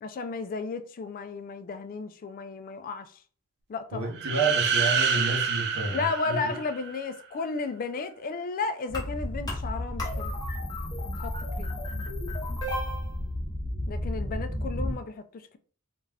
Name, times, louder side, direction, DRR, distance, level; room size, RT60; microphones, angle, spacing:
voice 1, 0.0-3.1 3.7-4.2 5.9-10.3 11.2-11.8 13.9-15.6, left 4 dB, 40° left, 0.3 m, -34 dB
voice 2, 3.9-6.0 6.4-6.5, right 3 dB, 75° right, 0.8 m, -29 dB
sound 1, 4.2-7.1, right 6 dB, 50° right, 0.3 m, -27 dB
sound 2, 8.9-14.9, left 1 dB, 20° left, 0.7 m, -32 dB
2.4 x 2.2 x 3.3 m
head